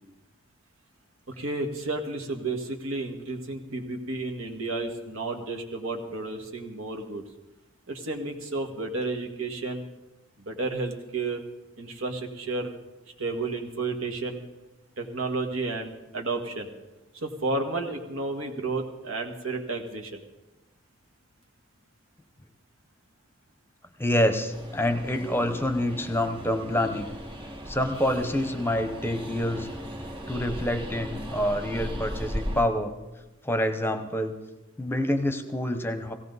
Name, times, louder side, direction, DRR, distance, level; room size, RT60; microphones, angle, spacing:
voice 1, 1.3-7.2 7.9-9.9 10.4-11.4 11.8-12.7 13.2-14.4 15.0-16.7 17.2-20.2, right 3 dB, 80° right, 3 dB, 1.8 m, -32 dB
voice 2, 24.0-27.1 27.7-29.7 30.3-32.9 33.4-34.4 34.8-36.1, left 1 dB, 10° left, 8 dB, 0.8 m, -27 dB
Train, 24.5-32.6, equal, 25° right, 1.8 m, -37 dB
17.5 x 16.5 x 4.1 m, 1.0 s
head